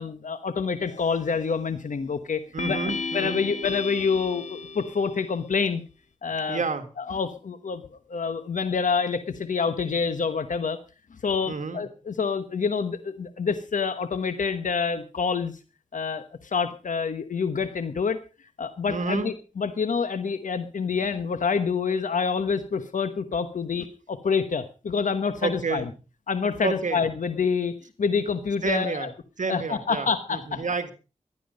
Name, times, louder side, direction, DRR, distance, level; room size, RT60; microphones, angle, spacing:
voice 1, 0.0-2.8 3.1-5.8 6.2-6.6 7.0-7.8 8.1-10.8 11.2-15.6 15.9-18.2 18.6-25.8 26.3-29.1 29.5-30.6, left 5 dB, 90° left, 11 dB, 1.2 m, -27 dB
sound 1, 0.9-1.4 2.6-5.3, left 4 dB, 75° left, 1.5 m, -34 dB
voice 2, 2.5-3.5 6.5-6.8 11.5-11.8 18.9-19.3 25.4-25.9 26.6-27.0 28.6-29.1 29.4-30.9, right 4 dB, 80° right, 9 dB, 1.8 m, -29 dB
16.0 x 12.0 x 5.2 m, 0.34 s
wide cardioid pair, 60°, 13 cm